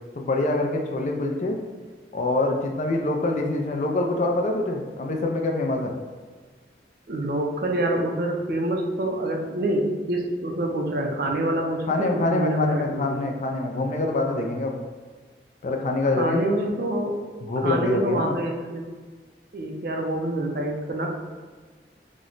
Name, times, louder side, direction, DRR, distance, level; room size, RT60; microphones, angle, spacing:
voice 1, 0.1-1.6 2.1-6.0 11.9-14.8 15.6-16.4 17.4-18.4, left 2 dB, 40° left, 2 dB, 0.3 m, -25 dB
voice 2, 7.1-13.2 16.1-18.9 19.5-21.1, right 1 dB, 55° right, 1 dB, 0.4 m, -26 dB
3.0 x 2.1 x 3.8 m, 1.5 s
head